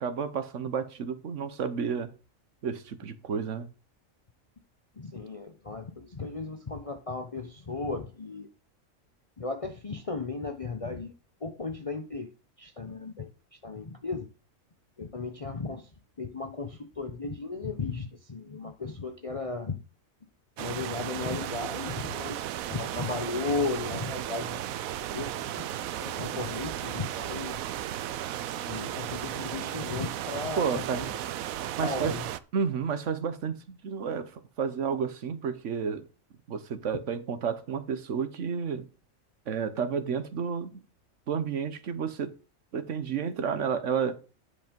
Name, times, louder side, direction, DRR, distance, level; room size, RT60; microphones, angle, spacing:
voice 1, 0.0-2.1 2.6-3.7 30.6-31.1 31.8-32.1 32.5-36.1 36.5-38.9 39.5-40.8 41.3-42.3 42.7-44.2, right 6 dB, 65° right, 1.3 m, -31 dB
voice 2, 5.0-8.5 9.4-11.1 11.4-12.3 12.6-13.3 13.6-14.3 15.0-15.9 16.2-19.8 20.6-22.4 22.7-24.6 25.1-25.7 26.0-27.6 28.7-31.0 31.8-32.3, left 4 dB, 30° left, 0.8 m, -35 dB
sound 1, 20.6-32.4, right 12 dB, 85° right, 1.1 m, -35 dB
10.0 x 5.4 x 5.2 m
omnidirectional pair, 1.4 m